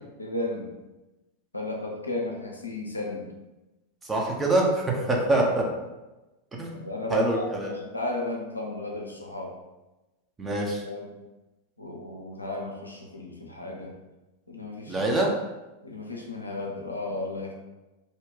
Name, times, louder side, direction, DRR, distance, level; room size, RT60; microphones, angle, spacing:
voice 1, 0.2-0.8 1.5-3.3 5.1-5.7 6.7-9.6 10.5-11.1 11.8-14.0 14.5-15.1 15.8-17.5, left 2 dB, 85° left, 0 dB, 0.5 m, -34 dB
voice 2, 4.0-5.6 6.6-6.8 7.1-7.7 10.4-10.8 14.9-15.3, right 2 dB, 15° right, -1 dB, 0.6 m, -24 dB
2.6 x 2.2 x 3.6 m, 1.1 s
figure-of-eight pair, 90°, 0 cm